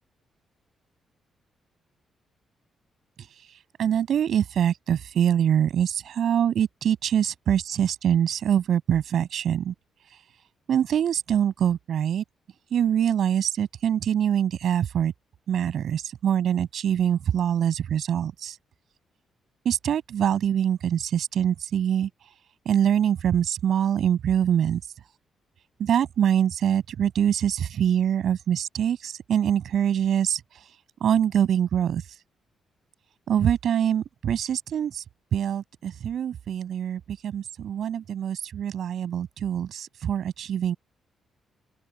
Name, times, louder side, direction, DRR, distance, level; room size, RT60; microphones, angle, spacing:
voice 1, 3.8-9.7 10.7-12.2 12.7-15.1 15.5-18.6 19.6-22.1 22.7-24.8 25.8-30.4 31.0-32.0 33.3-35.0 35.3-40.8, right 9 dB, 65° right, 7.4 m, -24 dB
open air
cardioid pair, 130°, 0 cm